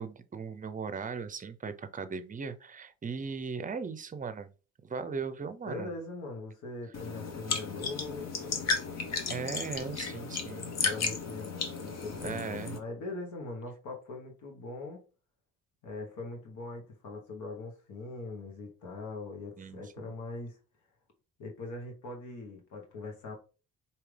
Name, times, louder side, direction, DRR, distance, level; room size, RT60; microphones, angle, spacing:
voice 1, 0.0-4.5 4.8-5.9 9.3-10.8 12.2-12.8 19.6-20.1, right 5 dB, 25° right, 0.5 m, -38 dB
voice 2, 5.7-8.6 10.8-15.0 15.8-20.6 21.4-23.4, left 3 dB, 75° left, 1.3 m, -41 dB
sound 1, 6.9-12.8, left 4 dB, 60° left, 1.1 m, -34 dB
4.8 x 2.8 x 3.3 m
cardioid pair, 90°, 30 cm